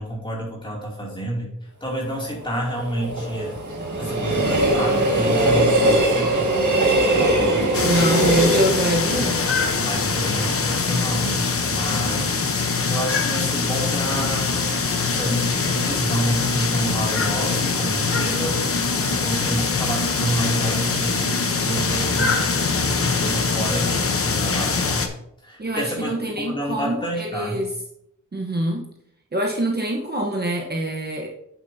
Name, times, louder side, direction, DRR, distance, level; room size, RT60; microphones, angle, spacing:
voice 1, 0.0-1.5 1.8-3.6 4.0-8.2 9.8-12.3 12.9-14.8 15.1-18.6 19.2-22.4 22.7-25.1 25.4-27.6, right 1 dB, 15° left, -3 dB, 2.6 m, -29 dB
Train, 1.9-11.0 11.4-11.5, right 1 dB, 70° right, 1.8 m, -22 dB
sound 1, 7.7-25.1, left 4 dB, 45° left, 0.8 m, -23 dB
voice 2, 7.8-9.4 25.6-27.7 28.3-28.8 29.3-31.3, right 1 dB, 30° right, -1 dB, 1.0 m, -24 dB
8.9 x 7.2 x 2.7 m, 0.76 s
wide cardioid pair, 135°, 31 cm